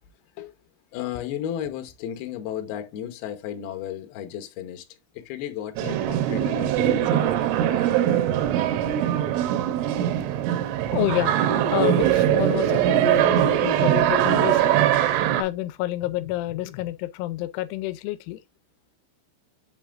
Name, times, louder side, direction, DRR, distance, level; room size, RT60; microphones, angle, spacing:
voice 1, 0.9-4.8 5.1-7.9 8.9-9.3, left 10 dB, 70° left, 2.6 m, -34 dB
sound 1, 5.8-15.4, right 11 dB, 90° right, 3.4 m, -22 dB
voice 2, 10.9-11.4 11.7-14.8 15.4-18.4, left 16 dB, 90° left, 3.1 m, -28 dB
7.7 x 5.5 x 2.5 m
omnidirectional pair, 5.4 m